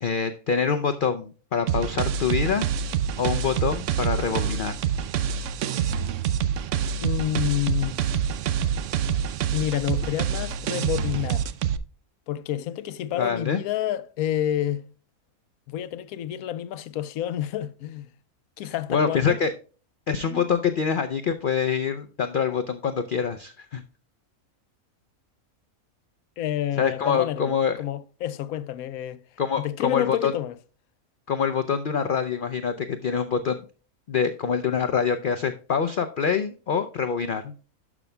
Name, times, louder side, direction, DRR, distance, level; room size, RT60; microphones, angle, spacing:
voice 1, 0.0-2.7 3.2-4.8 13.1-13.6 18.9-19.5 20.1-23.8 26.8-27.8 29.4-30.3 31.3-33.6 34.1-37.5, left 6 dB, 60° left, 0.5 m, -25 dB
sound 1, 1.7-11.8, right 8 dB, 65° right, 0.8 m, -26 dB
voice 2, 7.0-8.0 9.5-11.5 12.3-14.8 15.7-18.1 18.6-19.4 20.3-20.4 26.4-29.2 29.6-30.6, left 12 dB, 80° left, 1.1 m, -29 dB
12.0 x 6.0 x 2.2 m
omnidirectional pair, 1.5 m